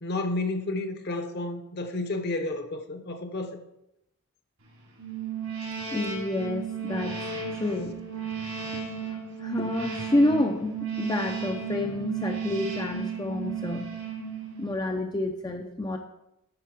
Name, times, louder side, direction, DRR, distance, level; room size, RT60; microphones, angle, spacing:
voice 1, 0.0-3.6, left 2 dB, 50° left, 0.9 m, -31 dB
sound 1, 5.0-14.9, right 6 dB, 85° right, 3.9 m, -34 dB
voice 2, 5.9-7.2 7.5-8.0 9.1-13.9 14.6-16.0, left 1 dB, 20° left, 0.5 m, -29 dB
12.0 x 4.5 x 4.8 m
head